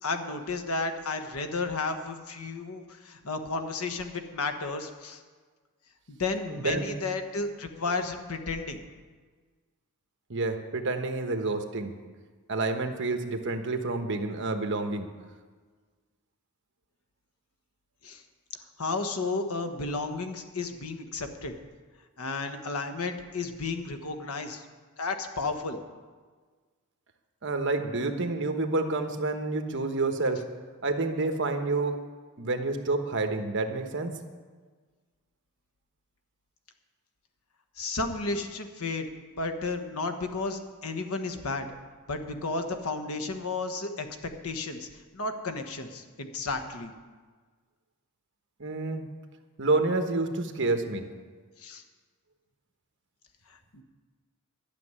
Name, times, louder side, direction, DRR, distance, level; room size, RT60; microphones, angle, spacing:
voice 1, 0.0-5.2 6.1-8.8 18.0-18.2 18.8-21.5 22.2-24.6 25.0-25.8 37.8-39.1 39.3-41.7 42.1-44.1 44.4-44.9 45.1-46.9 51.6-51.8 53.5-53.8, left 3 dB, 75° left, 7 dB, 1.3 m, -33 dB
voice 2, 6.5-6.9 10.3-11.9 12.5-15.1 27.4-30.4 30.8-32.0 32.4-34.1 48.6-49.0 49.6-51.0, right 3 dB, 55° right, 6 dB, 1.2 m, -29 dB
12.0 x 7.2 x 9.8 m, 1.5 s
head